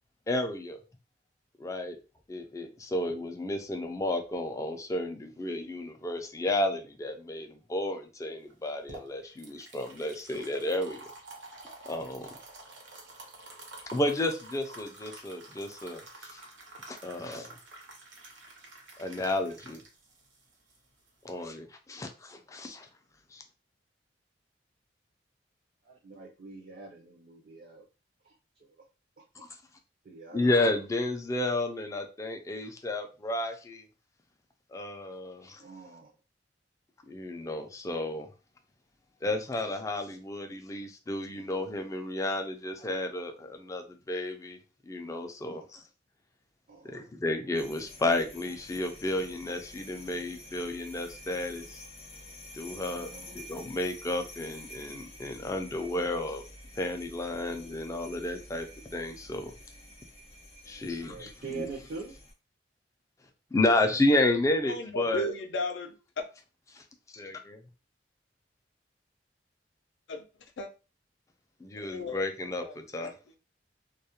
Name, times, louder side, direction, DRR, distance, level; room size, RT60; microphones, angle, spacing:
voice 1, 0.3-0.8 1.6-2.0 2.3-11.0 11.9-12.3 13.9-16.0 16.3-16.4 16.9-17.5 19.0-19.8 21.2-22.9 23.3-23.4 30.3-33.8 34.7-35.6 37.1-38.3 39.2-44.6 44.9-45.8 46.8-51.7 52.6-56.4 56.8-58.7 58.9-59.5 60.7-61.7 63.5-65.3 67.1-67.6 71.6-73.1, left 1 dB, 15° left, 5 dB, 0.3 m, -32 dB
sound 1, 8.5-21.5, right 2 dB, 85° right, 0.8 m, -49 dB
voice 2, 25.9-27.8 28.2-28.3 30.0-30.8 35.6-36.1 45.5-45.7 46.7-47.1 52.7-53.4 60.7-62.1, right 4 dB, 55° right, 0 dB, 0.4 m, -44 dB
sound 2, 47.5-62.3, left 1 dB, 35° left, 0.7 m, -49 dB
voice 3, 64.7-66.2 70.1-70.2 70.6-70.7 71.8-72.2 72.6-73.0, left 1 dB, 80° left, 5 dB, 0.4 m, -35 dB
2.3 x 2.1 x 2.8 m, 0.32 s
head